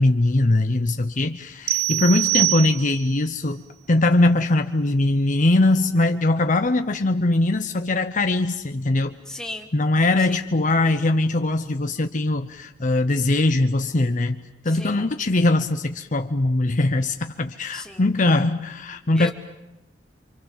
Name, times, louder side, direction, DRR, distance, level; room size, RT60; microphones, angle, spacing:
voice 1, 0.0-3.6 3.9-9.2 9.7-14.4 14.6-19.3, left 2 dB, 45° left, 7 dB, 0.9 m, -21 dB
sound 1, 1.7-3.2, right 19 dB, 55° right, 0.9 m, -24 dB
voice 2, 9.3-9.7 10.2-10.5 14.6-15.1 17.7-18.1 19.1-19.3, left 1 dB, 5° left, 2 dB, 2.5 m, -36 dB
28.0 x 25.5 x 7.4 m, 0.98 s
head